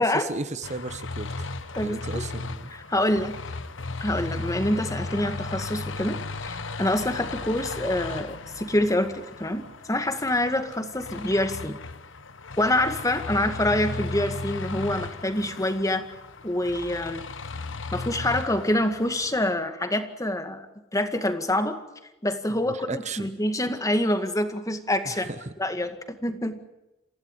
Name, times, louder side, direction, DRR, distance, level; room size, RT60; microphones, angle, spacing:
voice 1, 0.1-1.5 1.8-2.7 22.5-23.3 25.0-25.5, right 3 dB, 35° right, 11 dB, 1.0 m, -35 dB
sound 1, 0.6-19.5, left 3 dB, 70° left, 1.3 m, -36 dB
voice 2, 1.8-2.2 2.7-3.4 4.0-11.8 12.6-16.1 16.4-17.2 17.9-20.7 20.9-21.8 22.2-25.3 25.6-26.6, left 1 dB, 15° left, 8 dB, 2.1 m, -26 dB
27.5 x 16.0 x 9.2 m, 0.98 s
head